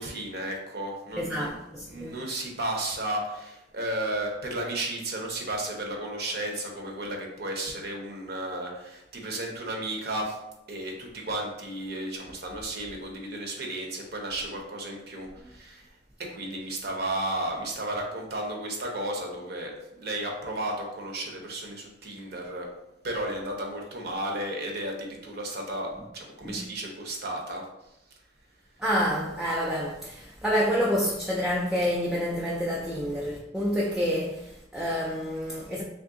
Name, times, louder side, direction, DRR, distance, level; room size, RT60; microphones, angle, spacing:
voice 1, 0.0-10.4 10.7-15.9 16.3-19.7 20.0-22.7 23.0-27.6, right 1 dB, 60° right, 0.8 m, -33 dB
voice 2, 1.2-2.1 26.4-26.6 28.8-35.8, equal, 5° right, 0.3 m, -28 dB
3.4 x 2.5 x 3.6 m
head